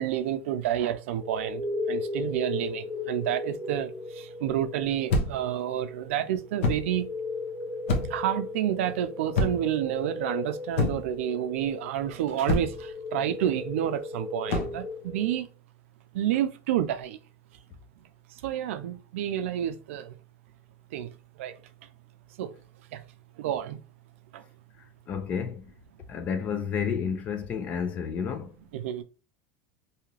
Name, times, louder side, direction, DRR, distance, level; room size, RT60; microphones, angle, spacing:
voice 1, 0.0-1.6 1.9-3.9 4.4-7.1 8.1-12.7 13.1-15.5 16.1-17.2 18.4-20.1 20.9-21.1 21.4-21.5 22.4-22.5 23.4-23.8 28.7-29.0, right 11 dB, 80° right, 0.4 m, -29 dB
sound 1, 1.2-15.4, left 2 dB, 5° left, 0.7 m, -36 dB
sound 2, 5.1-5.5 6.6-6.9 7.9-8.3 9.3-9.8 10.8-11.2 12.5-12.9 14.5-14.8, left 2 dB, 70° left, 0.8 m, -27 dB
voice 2, 25.1-25.7 26.1-28.5, left 7 dB, 20° left, 0.3 m, -31 dB
2.7 x 2.4 x 3.1 m
supercardioid pair, 180°, 7 cm